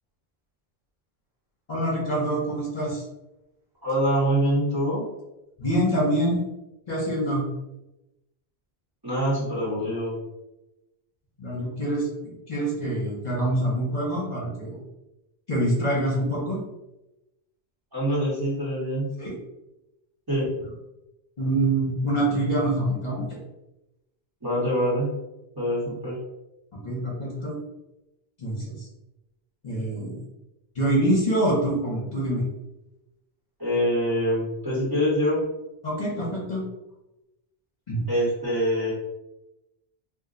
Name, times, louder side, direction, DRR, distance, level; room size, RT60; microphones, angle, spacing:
voice 1, 1.7-3.0 5.6-6.4 6.9-7.5 11.4-12.1 12.5-14.8 15.5-16.6 19.2-19.4 21.4-23.4 26.7-27.5 28.4-28.9 29.6-30.2 30.7-32.4 35.8-36.6 37.9-38.0, right 1 dB, 45° left, -5 dB, 0.9 m, -25 dB
voice 2, 3.8-5.0 9.0-10.2 17.9-19.1 20.3-20.5 24.4-25.1 25.6-26.2 33.6-35.4 38.1-38.9, equal, 20° right, -7 dB, 1.0 m, -24 dB
2.5 x 2.1 x 3.7 m, 0.94 s
omnidirectional pair, 1.1 m